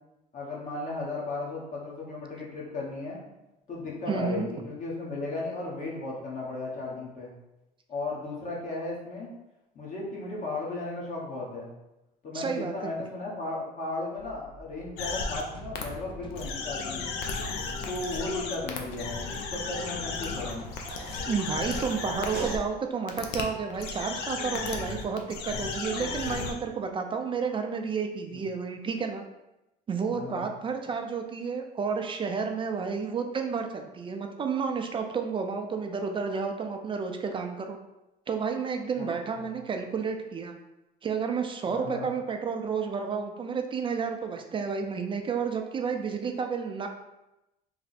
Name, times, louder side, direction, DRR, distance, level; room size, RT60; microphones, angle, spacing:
voice 1, 0.3-3.2 3.7-7.3 7.9-9.3 9.7-11.7 12.2-17.1 17.9-20.7 28.3-28.4 30.1-30.5 39.0-39.1 39.4-39.6 41.7-42.1, left 2 dB, 50° left, -4 dB, 1.1 m, -35 dB
voice 2, 4.1-4.5 12.3-12.7 21.2-29.2 29.9-37.8 38.3-40.5 41.0-46.9, right 5 dB, 30° right, 4 dB, 0.4 m, -31 dB
sound 1, 14.1-22.0, left 1 dB, 30° left, 0.5 m, -47 dB
sound 2, 15.0-15.4 15.7-15.8 16.3-22.6 23.1-23.4 23.7-26.5, left 4 dB, 90° left, 0.5 m, -34 dB
sound 3, 17.6-22.7, right 4 dB, 85° right, 0.7 m, -43 dB
3.2 x 2.0 x 4.0 m, 0.93 s
cardioid pair, 110°, 17 cm